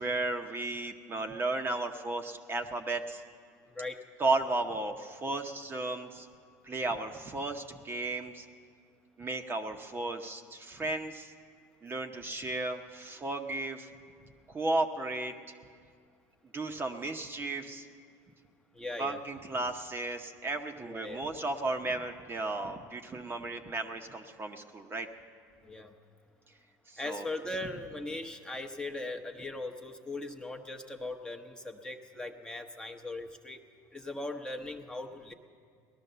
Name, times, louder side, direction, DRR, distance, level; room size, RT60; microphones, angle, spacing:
voice 1, 0.0-3.2 4.2-6.3 6.6-8.5 9.2-11.3 11.8-13.9 14.5-15.3 16.5-17.9 19.0-25.1 26.9-27.3, right 2 dB, 25° right, 4 dB, 0.9 m, -34 dB
voice 2, 18.7-19.2 20.8-21.2 25.6-25.9 27.0-33.6 33.9-35.3, left 2 dB, 10° left, 4 dB, 0.9 m, -39 dB
18.0 x 12.0 x 6.8 m, 2.2 s
supercardioid pair, 105°, 9 cm